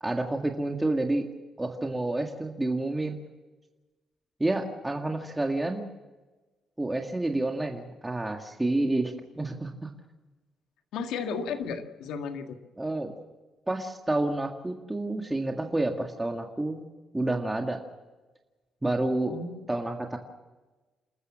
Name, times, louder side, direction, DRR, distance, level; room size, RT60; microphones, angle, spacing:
voice 1, 0.0-1.3 1.6-3.2 4.4-5.8 6.8-9.9 12.8-13.1 13.7-16.9 17.1-17.8 18.8-19.3 19.7-20.2, right 2 dB, 15° right, 3 dB, 1.9 m, -29 dB
voice 2, 10.9-12.6 19.3-19.7, left 5 dB, 85° left, 6 dB, 1.8 m, -34 dB
28.0 x 13.5 x 7.4 m, 1.2 s
cardioid pair, 90°, 0 cm